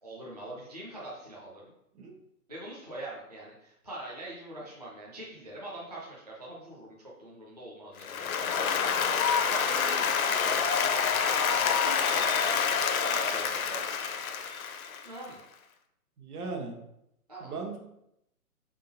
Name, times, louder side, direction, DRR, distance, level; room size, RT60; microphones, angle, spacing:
voice 1, 0.0-1.7 2.5-8.6 9.5-13.8 15.0-15.4 17.3-17.5, right 1 dB, 30° right, -6 dB, 0.4 m, -43 dB
Applause, 8.0-15.2, left 6 dB, 65° left, 0.6 m, -27 dB
voice 2, 16.2-16.8 17.4-17.8, right 3 dB, 75° right, 1 dB, 1.2 m, -37 dB
4.5 x 3.6 x 2.7 m, 0.79 s
hypercardioid pair, 175°, 45 cm